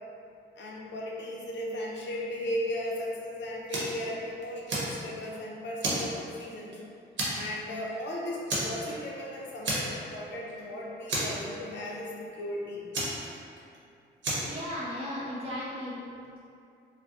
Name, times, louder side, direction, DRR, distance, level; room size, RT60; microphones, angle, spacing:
voice 1, 0.6-6.8 7.3-12.9, left 1 dB, 70° left, -3 dB, 0.6 m, -36 dB
Fire, 3.7-4.0 4.4-5.3 5.8-6.7 7.2-7.6 7.9-8.0 8.5-9.2 9.6-10.2 10.5-10.6 11.1-11.9 12.9-13.8 14.2-14.6, right 1 dB, 75° right, 0.8 m, -32 dB
voice 2, 14.3-16.0, left 1 dB, 30° right, -6 dB, 0.5 m, -36 dB
3.9 x 2.2 x 2.4 m, 2.6 s
cardioid pair, 85°, 19 cm